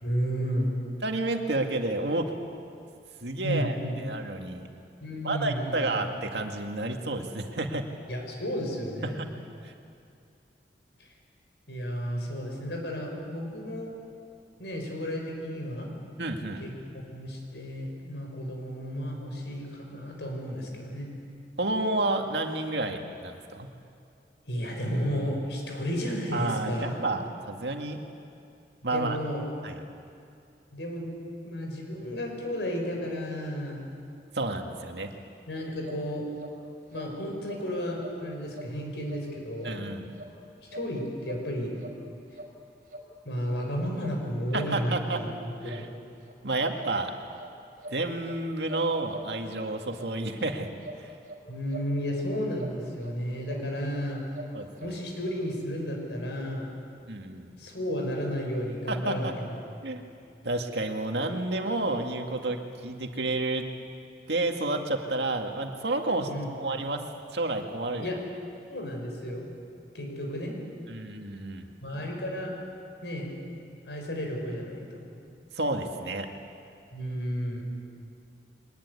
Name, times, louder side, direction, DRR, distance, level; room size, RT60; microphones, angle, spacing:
voice 1, 0.0-0.8 3.4-4.0 5.0-5.9 8.1-9.2 11.7-13.9 14.6-15.9 16.6-21.1 24.5-27.0 28.8-29.5 30.7-31.1 31.4-33.8 35.5-36.2 36.9-39.9 40.7-41.7 43.2-45.9 51.5-54.2 54.8-56.7 57.6-59.6 66.3-66.5 68.0-68.2 68.7-69.5 69.9-70.6 71.8-72.5 73.0-73.3 73.8-75.1 76.9-77.6, equal, 90° left, 2 dB, 5.7 m, -33 dB
voice 2, 1.0-2.3 3.2-4.7 5.2-7.8 9.0-9.3 9.6-9.7 16.2-16.6 21.6-23.7 26.3-28.0 28.8-29.2 29.6-29.7 34.3-35.1 39.6-40.1 44.5-45.2 45.7-45.9 46.4-47.1 47.9-50.7 51.0-51.1 54.5-54.7 57.1-57.5 58.9-59.3 59.8-60.0 60.4-63.7 64.3-66.3 66.6-67.0 67.3-68.1 70.9-71.7 75.6-76.3, right 2 dB, 75° right, 4 dB, 2.1 m, -30 dB
sound 1, 35.8-36.0 36.4-36.5 36.9-37.1 37.4-37.6 38.0-38.2 38.5-38.7 39.1-39.2 39.6-39.8 40.1-40.3 40.7-40.9 41.2-41.4 41.8-42.0 42.3-42.5 42.9-43.0 43.4-43.5 44.0-44.2 44.5-44.7 45.1-45.3 45.7-45.8 46.2-46.3 46.8-47.0 47.4-47.5 47.8-48.4 48.7-49.7 49.9-50.1 50.4-50.5 50.8-51.4 51.7-52.2 52.6-52.8 53.0-53.1 53.4-53.6 53.9-54.0 54.3-54.9 55.2-55.3, right 1 dB, 50° right, 5.5 m, -43 dB
23.0 x 19.5 x 9.8 m, 2.5 s
head